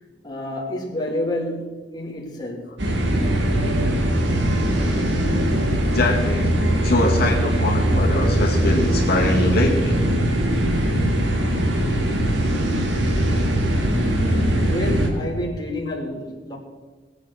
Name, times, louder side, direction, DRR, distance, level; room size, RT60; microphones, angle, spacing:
voice 1, 0.2-2.7 11.6-11.7 14.2-16.6, left 1 dB, 25° left, 2.7 m, -29 dB
sound 1, 2.8-15.1, right 1 dB, 75° right, 2.6 m, -21 dB
voice 2, 5.9-10.0, left 2 dB, 60° left, 2.4 m, -23 dB
19.5 x 8.2 x 6.6 m
head